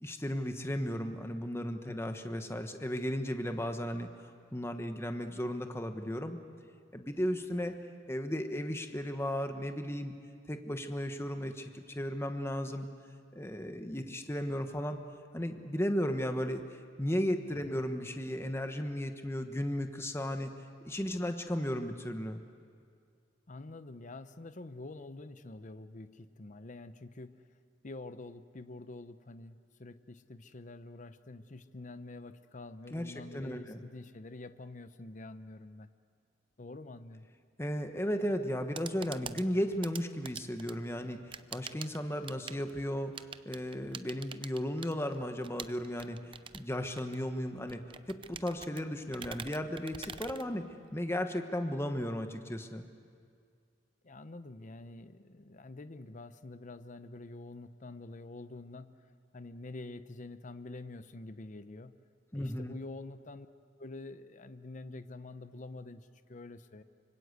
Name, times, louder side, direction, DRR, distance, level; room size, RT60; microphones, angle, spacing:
voice 1, 0.0-6.4 6.9-7.7 8.1-10.1 10.5-12.9 13.3-15.0 15.3-16.6 17.0-20.5 20.8-22.4 32.9-33.8 37.6-43.1 43.4-46.2 46.5-47.8 48.1-50.7 50.9-52.9 62.3-62.8, equal, 15° left, 6 dB, 1.2 m, -35 dB
voice 2, 1.8-2.2 17.6-17.8 23.5-27.4 27.8-35.9 36.6-37.3 54.0-59.0 59.3-62.0 62.3-63.5 63.8-66.8, left 2 dB, 45° left, 11 dB, 0.8 m, -47 dB
sound 1, 38.5-51.1, right 6 dB, 30° right, 0.6 m, -47 dB
25.5 x 25.0 x 8.0 m, 2.2 s
head